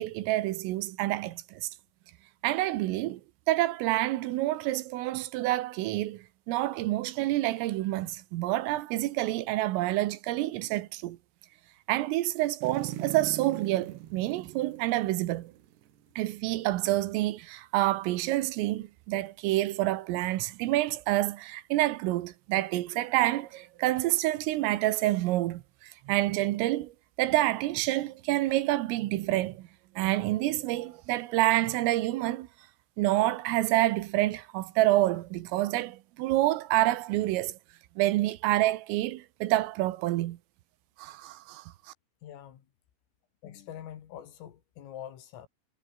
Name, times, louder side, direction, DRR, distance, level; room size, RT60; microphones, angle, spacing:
voice 1, 0.0-1.7 2.4-3.2 3.5-11.2 11.9-15.5 16.2-26.9 27.2-29.7 30.0-32.5 33.0-37.6 38.0-40.4 41.0-41.7, right 16 dB, 80° right, 3.8 m, -28 dB
sound 1, 12.6-16.0 16.3-16.4, right 12 dB, 65° right, 3.4 m, -41 dB
voice 2, 42.2-42.7 43.4-45.5, left 10 dB, 80° left, 5.2 m, -44 dB
omnidirectional pair, 5.9 m